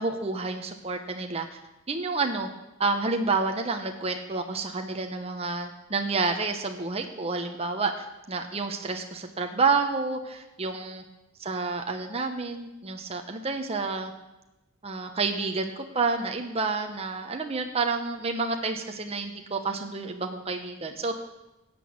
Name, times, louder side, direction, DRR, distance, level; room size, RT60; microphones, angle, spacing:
voice 1, 0.0-1.6 1.9-2.5 2.8-11.0 11.4-14.1 14.8-21.2, right 4 dB, 30° right, 4 dB, 1.0 m, -29 dB
16.5 x 6.2 x 8.7 m, 0.97 s
head